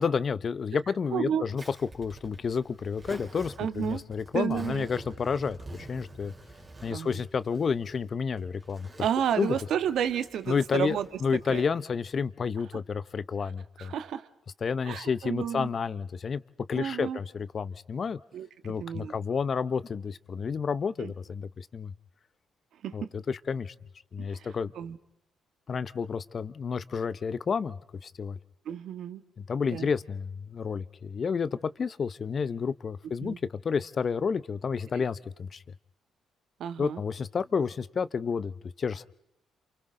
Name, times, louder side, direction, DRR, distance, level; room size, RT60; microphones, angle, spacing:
voice 1, 0.0-6.3 6.8-8.9 9.4-9.6 10.5-13.9 14.6-16.4 16.7-18.2 18.6-21.9 22.9-23.7 24.1-24.7 25.7-28.4 29.5-33.3 33.6-35.6 36.8-39.1, left 6 dB, 45° left, 15 dB, 0.8 m, -30 dB
voice 2, 1.1-1.4 3.6-4.0 4.3-4.9 6.9-7.2 9.0-11.1 11.5-11.6 13.8-14.3 14.8-15.7 16.8-17.2 18.3-18.5 18.8-19.1 21.0-21.1 22.8-23.1 24.2-24.5 24.7-25.0 28.6-29.2 29.7-29.9 33.2-33.4 34.9-35.0 36.6-37.0, right 9 dB, 70° right, 10 dB, 1.5 m, -31 dB
Zipper (clothing), 1.6-11.6, right 2 dB, 30° right, 3.5 m, -48 dB
28.5 x 28.0 x 3.8 m, 0.86 s
cardioid pair, 90°, 0 cm